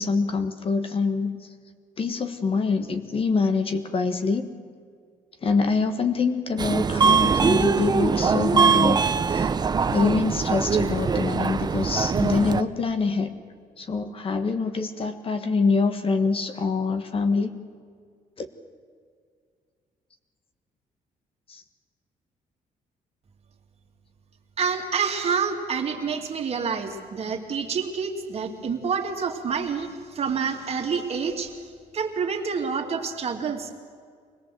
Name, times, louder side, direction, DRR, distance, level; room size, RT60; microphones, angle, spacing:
voice 1, 0.0-1.3 2.0-4.5 5.4-9.5 9.9-13.3 13.8-17.5 18.4-18.5 21.5-21.6, left 4 dB, 40° left, 8 dB, 1.5 m, -25 dB
Subway metro underground, 6.6-12.6, right 5 dB, 30° right, 0.7 m, -22 dB
voice 2, 24.6-33.7, right 6 dB, 45° right, 3 dB, 2.5 m, -28 dB
24.0 x 18.5 x 7.8 m, 2.1 s
cardioid pair, 125°, 15 cm